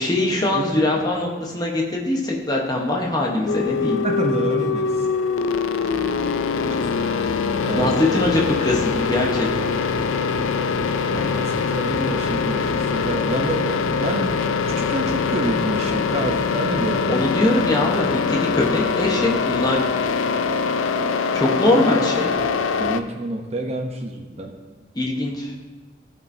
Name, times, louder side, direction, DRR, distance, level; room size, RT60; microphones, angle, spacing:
voice 1, 0.0-4.0 7.7-9.7 17.1-19.8 21.3-22.4 24.9-25.5, left 1 dB, 20° left, -1 dB, 1.0 m, -22 dB
sound 1, 3.5-23.0, left 5 dB, 90° left, 0.4 m, -23 dB
voice 2, 4.0-5.1 6.8-6.9 7.6-7.9 11.1-17.3 22.8-24.5, right 1 dB, 35° right, 2 dB, 0.7 m, -28 dB
15.5 x 5.3 x 2.7 m, 1.3 s
head